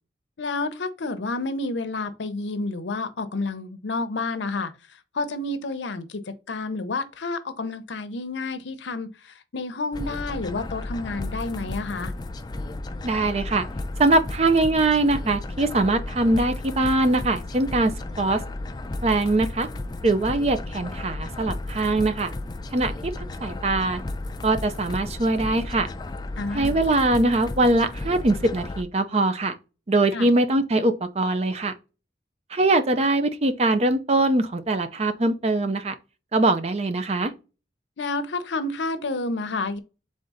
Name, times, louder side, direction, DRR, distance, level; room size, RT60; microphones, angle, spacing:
voice 1, 0.4-4.7 5.1-12.1 26.4-26.8 30.1-30.3 38.0-39.8, left 3 dB, 80° left, 0.7 m, -30 dB
sound 1, 9.9-28.8, left 2 dB, 20° left, 0.3 m, -34 dB
voice 2, 13.0-13.7 14.0-18.4 19.0-19.7 20.0-22.3 22.7-23.1 23.4-24.0 24.4-25.9 26.5-29.6 29.9-31.7 32.5-35.9 36.3-37.3, right 2 dB, 35° right, 0.5 m, -22 dB
3.7 x 3.6 x 3.9 m
head